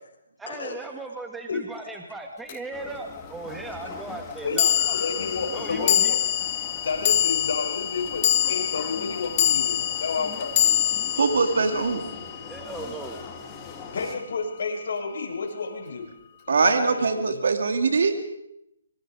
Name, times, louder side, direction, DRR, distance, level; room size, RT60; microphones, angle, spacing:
voice 1, 0.4-5.0 5.5-6.1 12.3-13.2, right 2 dB, 5° right, 3 dB, 1.7 m, -37 dB
sound 1, 2.5-2.6 4.6-13.0, left 11 dB, 35° left, 1.4 m, -25 dB
sound 2, 2.7-14.2, left 5 dB, 15° left, 3.0 m, -42 dB
voice 2, 4.4-6.3 6.8-10.9 13.9-16.1 16.6-17.4, left 4 dB, 60° left, -1 dB, 7.1 m, -31 dB
voice 3, 11.2-12.0 16.5-18.1, right 4 dB, 70° right, 6 dB, 2.8 m, -22 dB
26.0 x 22.5 x 5.2 m, 0.79 s
hypercardioid pair, 160°, 0 cm